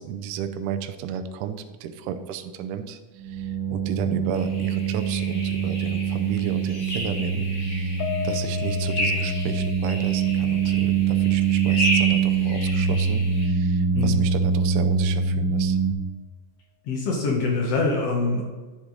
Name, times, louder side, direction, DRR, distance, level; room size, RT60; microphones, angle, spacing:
voice 1, 0.0-3.0 3.3-8.0 8.2-15.8, right 8 dB, 80° right, 8 dB, 1.9 m, -33 dB
sound 1, 3.2-15.9, right 6 dB, 55° right, 1.7 m, -24 dB
sound 2, 4.3-13.5, equal, 35° left, 1.0 m, -32 dB
Piano, 8.0-12.5 12.8-13.0 13.4-13.5, left 10 dB, 85° left, 2.4 m, -36 dB
voice 2, 16.9-18.4, left 3 dB, 65° left, -1 dB, 1.6 m, -24 dB
10.0 x 6.6 x 3.9 m, 1.3 s
omnidirectional pair, 4.2 m